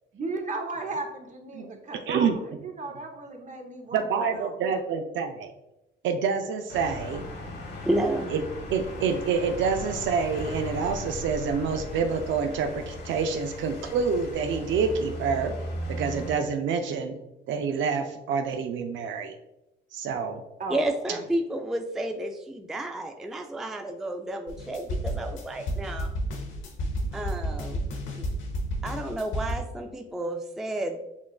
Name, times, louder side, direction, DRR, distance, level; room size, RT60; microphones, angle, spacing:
voice 1, 0.1-2.3 2.6-4.8 20.6-20.8 21.1-21.2, right 3 dB, 40° right, 3 dB, 0.9 m, -35 dB
voice 2, 3.9-5.5 6.0-7.2 8.3-8.4 8.7-15.5 15.9-17.1 17.5-19.3 19.9-20.4, right 5 dB, 75° right, 6 dB, 0.4 m, -27 dB
sound 1, 6.7-16.4, left 1 dB, 60° left, 1.1 m, -37 dB
voice 3, 7.8-8.3 20.7-26.1 27.1-27.8 28.2-28.3 28.8-31.0, right 1 dB, ahead, 4 dB, 0.3 m, -31 dB
sound 2, 24.5-29.5, equal, 80° left, 0.8 m, -31 dB
7.0 x 2.4 x 2.3 m, 0.90 s
cardioid pair, 90°, 20 cm